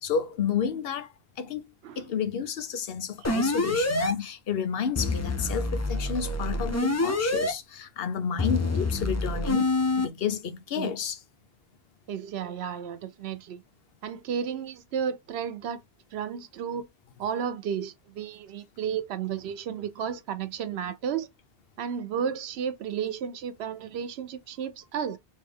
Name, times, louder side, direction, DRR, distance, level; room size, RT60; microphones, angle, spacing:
voice 1, 0.0-1.1 1.4-1.7 2.0-9.7 10.0-11.2, left 7 dB, 70° left, 0.9 m, -31 dB
sound 1, 3.2-4.1 5.0-7.5 8.4-10.1, left 2 dB, 25° left, 0.3 m, -26 dB
voice 2, 12.1-13.6 14.0-15.8 16.1-16.9 17.2-21.3 21.8-25.2, right 8 dB, 85° right, 0.9 m, -33 dB
3.2 x 2.6 x 3.5 m
omnidirectional pair, 1.0 m